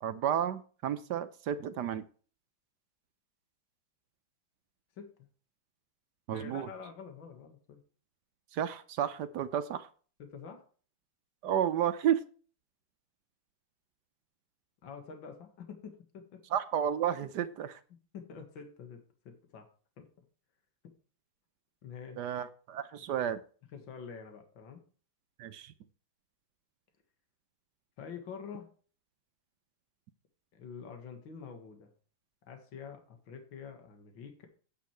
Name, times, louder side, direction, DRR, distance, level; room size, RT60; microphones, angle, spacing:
voice 1, 0.0-2.0 6.3-6.7 8.5-9.9 11.4-12.2 16.5-17.7 22.2-23.4 25.4-25.7, right 9 dB, 65° right, 12 dB, 1.2 m, -32 dB
voice 2, 6.3-7.8 10.2-10.6 14.8-16.4 17.2-17.3 18.1-19.7 20.0-20.1 21.8-22.2 23.7-24.8 28.0-28.7 30.5-31.9 32.5-34.5, left 6 dB, 75° left, 5 dB, 2.4 m, -47 dB
9.0 x 8.2 x 4.5 m, 0.39 s
omnidirectional pair, 2.1 m